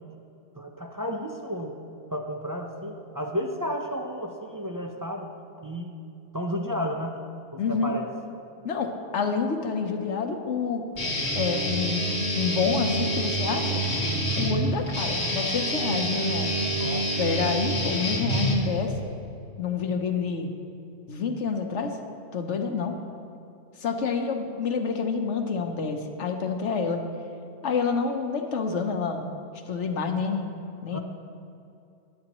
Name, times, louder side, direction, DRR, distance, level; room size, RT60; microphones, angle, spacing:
voice 1, 0.6-1.8 2.1-5.3 5.6-6.0 6.3-7.2 7.5-8.1 16.7-17.1 30.9-31.0, equal, 20° right, 2 dB, 0.6 m, -32 dB
voice 2, 7.6-7.9 8.6-10.8 11.3-12.0 12.3-13.8 14.3-16.5 17.2-18.9 19.6-20.5 21.1-22.0 22.3-23.0 23.8-27.0 27.6-29.3 29.7-30.5 30.8-31.0, left 5 dB, 85° left, 4 dB, 1.3 m, -28 dB
Guitar, 11.0-19.0, right 1 dB, 65° left, 2.0 m, -27 dB
21.0 x 8.6 x 3.0 m, 2.6 s
omnidirectional pair, 1.2 m